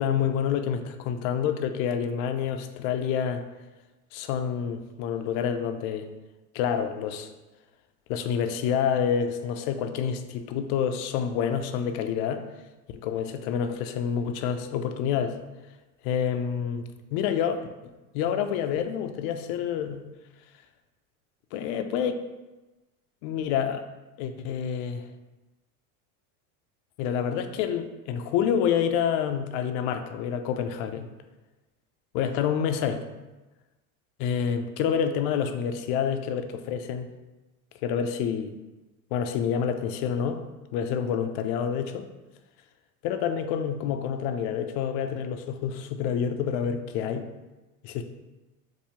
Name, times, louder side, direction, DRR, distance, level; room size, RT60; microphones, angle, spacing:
voice 1, 0.0-3.4 4.1-6.1 6.5-7.3 8.1-12.4 13.0-15.4 16.0-16.8 17.1-20.0 21.5-22.2 23.2-23.8 24.2-25.1 27.0-31.1 32.1-33.0 34.2-37.1 37.8-38.5 39.1-40.4 40.7-42.1 43.0-47.3 47.8-48.0, left 8 dB, 55° left, 8 dB, 0.4 m, -28 dB
2.7 x 2.6 x 4.3 m, 1.1 s
supercardioid pair, 115°, 42 cm